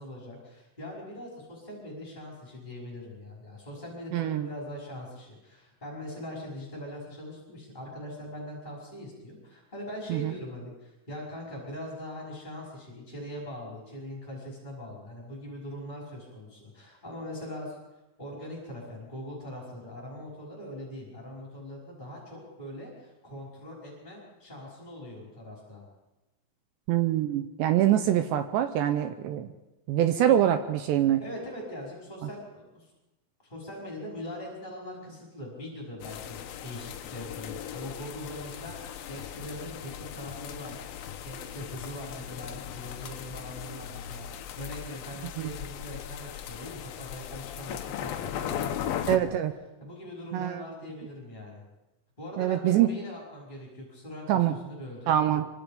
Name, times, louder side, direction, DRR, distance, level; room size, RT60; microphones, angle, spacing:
voice 1, 0.0-17.8 18.2-25.8 31.2-32.9 33.4-40.8 41.2-49.4 49.8-51.6 52.2-55.2, left 1 dB, 10° left, -3 dB, 5.3 m, -41 dB
voice 2, 4.1-4.5 10.1-10.3 26.9-29.5 29.9-31.2 45.4-45.5 49.1-49.5 50.3-50.6 52.4-52.9 54.3-54.5 55.1-55.5, right 11 dB, 75° right, 9 dB, 2.6 m, -24 dB
sound 1, 36.0-49.2, left 10 dB, 80° left, 2.1 m, -38 dB
25.5 x 25.0 x 5.3 m, 1.0 s
omnidirectional pair, 5.8 m